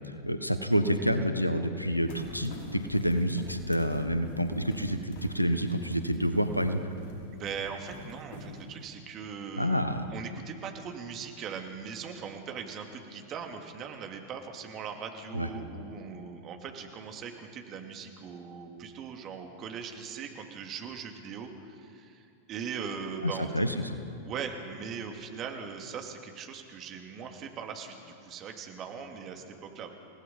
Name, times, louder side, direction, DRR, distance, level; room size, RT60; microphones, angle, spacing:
voice 1, 0.2-6.8 9.6-10.1 15.3-15.5 23.2-23.9, equal, 90° left, 10 dB, 1.3 m, -28 dB
sound 1, 2.1-8.9, left 1 dB, 50° left, 5.2 m, -46 dB
voice 2, 7.3-9.8 10.1-23.7 24.2-29.9, right 6 dB, 35° right, 3 dB, 2.6 m, -40 dB
29.0 x 17.5 x 5.5 m, 2.4 s
figure-of-eight pair, 90°, 0 cm